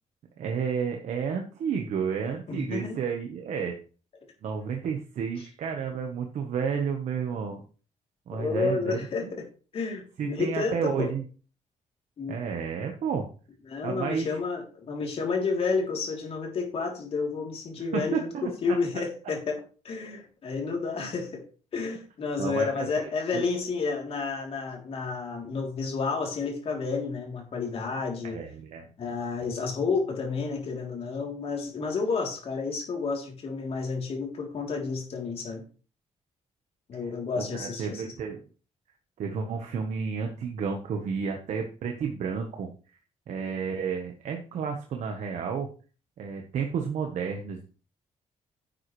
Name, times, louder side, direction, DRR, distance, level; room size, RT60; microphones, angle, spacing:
voice 1, 0.4-3.8 4.4-7.6 8.3-9.3 10.2-11.2 12.3-13.3 13.8-14.4 17.8-19.0 21.0-21.1 22.4-23.4 28.2-28.8 37.4-38.4 39.2-42.7 43.3-45.7 46.2-47.7, right 6 dB, 70° right, 3 dB, 1.3 m, -31 dB
voice 2, 2.5-3.0 8.3-9.4 9.7-11.1 12.2-12.4 13.7-18.3 18.6-19.6 19.8-21.4 21.7-28.4 29.0-35.6 36.9-38.1, left 4 dB, 50° left, 1 dB, 3.3 m, -30 dB
10.5 x 7.8 x 3.3 m, 0.37 s
cardioid pair, 155°, 13 cm